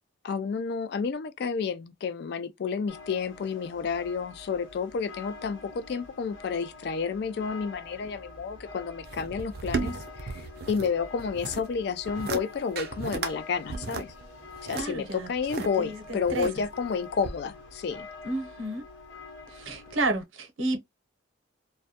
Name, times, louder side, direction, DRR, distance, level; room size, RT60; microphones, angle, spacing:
voice 1, 0.2-14.1 14.6-18.1, left 5 dB, 55° left, 0.3 m, -31 dB
sound 1, 2.9-20.2, left 3 dB, 85° left, 1.0 m, -46 dB
sound 2, 9.0-10.9 11.2-11.7 12.0-12.4 12.8-13.3 13.7-15.7 16.2-16.8 17.2-17.3, right 4 dB, 50° right, 0.4 m, -34 dB
voice 2, 14.7-15.3 15.8-16.5 18.2-18.8 19.5-20.8, right 2 dB, 85° right, 0.7 m, -31 dB
2.2 x 2.1 x 2.7 m
head